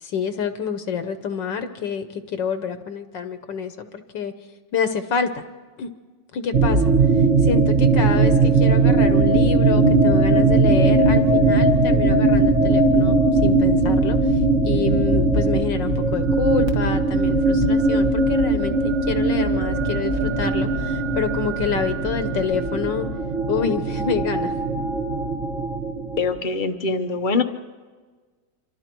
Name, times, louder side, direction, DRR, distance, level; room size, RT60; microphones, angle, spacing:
voice 1, 0.0-4.3 4.7-5.4 5.8-5.9 6.3-23.1 23.5-24.5, left 6 dB, 65° left, 9 dB, 1.5 m, -27 dB
sound 1, 6.5-26.4, right 3 dB, 40° right, 1.4 m, -19 dB
voice 2, 26.2-27.4, left 4 dB, 40° left, 8 dB, 0.7 m, -23 dB
26.5 x 24.5 x 4.6 m, 1.4 s
omnidirectional pair, 2.2 m